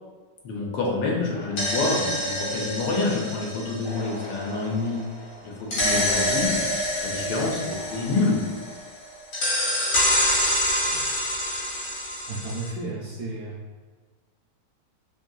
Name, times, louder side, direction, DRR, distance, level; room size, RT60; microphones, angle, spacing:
voice 1, 0.4-5.0 5.4-6.6 7.0-8.4, left 3 dB, 85° left, -2 dB, 1.3 m, -27 dB
sound 1, 1.3-5.0 5.7-8.9 9.3-12.7, equal, 55° left, 1.1 m, -27 dB
voice 2, 12.3-13.6, right 2 dB, 70° right, -6 dB, 1.0 m, -33 dB
3.2 x 2.6 x 2.3 m, 1.4 s
omnidirectional pair, 1.9 m